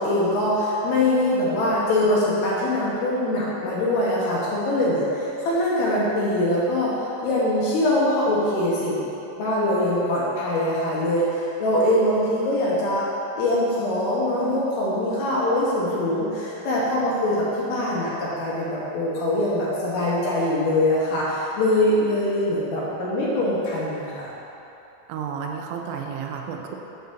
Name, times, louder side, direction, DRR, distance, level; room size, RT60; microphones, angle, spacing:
voice 1, 0.0-9.0 9.4-13.1 13.4-24.3, left 1 dB, 75° left, -7 dB, 2.7 m, -23 dB
voice 2, 25.1-26.8, right 6 dB, 90° right, 2 dB, 3.2 m, -31 dB
9.3 x 3.9 x 6.6 m, 3.0 s
omnidirectional pair, 5.6 m